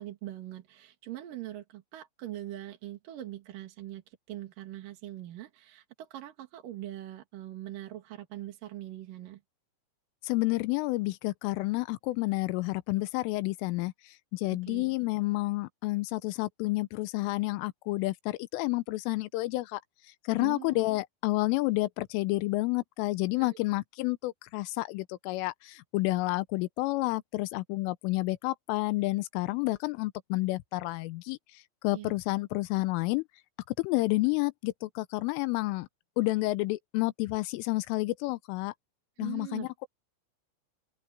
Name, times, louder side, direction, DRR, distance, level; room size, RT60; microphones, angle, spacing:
voice 1, 0.0-9.4 14.5-14.9 20.4-20.8 23.4-23.6 31.9-32.1 39.2-39.9, right 14 dB, 60° right, 2.7 m, -42 dB
voice 2, 10.2-19.8 20.3-31.4 31.8-33.2 33.8-35.9 36.2-38.7 39.2-39.9, left 21 dB, 85° left, 3.3 m, -30 dB
omnidirectional pair, 5.7 m